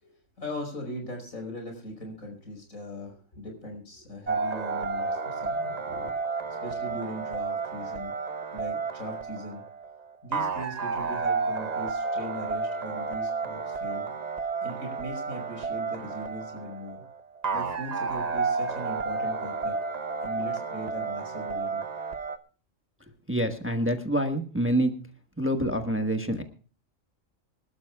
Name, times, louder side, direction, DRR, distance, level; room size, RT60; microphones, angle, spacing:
voice 1, 0.0-6.1 6.6-8.1 8.5-9.6 10.2-14.1 14.6-17.0 17.5-19.7 20.2-21.8, left 1 dB, 90° left, 2 dB, 5.9 m, -39 dB
sound 1, 4.3-22.4, right 4 dB, 35° right, 0.8 m, -31 dB
voice 2, 23.3-24.9 25.4-26.4, right 1 dB, 10° right, 5 dB, 1.2 m, -26 dB
25.0 x 12.5 x 2.3 m, 0.39 s
omnidirectional pair, 1.4 m